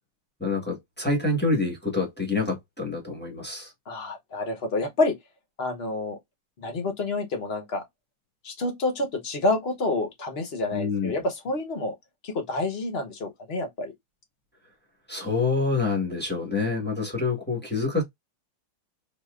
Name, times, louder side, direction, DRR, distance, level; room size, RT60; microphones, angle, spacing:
voice 1, 0.4-3.7 10.7-11.1 15.1-18.0, left 3 dB, 5° left, 1.0 m, -27 dB
voice 2, 3.9-5.1 5.6-6.2 6.6-7.8 8.4-11.9 12.2-13.9, left 2 dB, 40° left, 1.0 m, -28 dB
4.0 x 2.8 x 2.4 m
omnidirectional pair, 2.0 m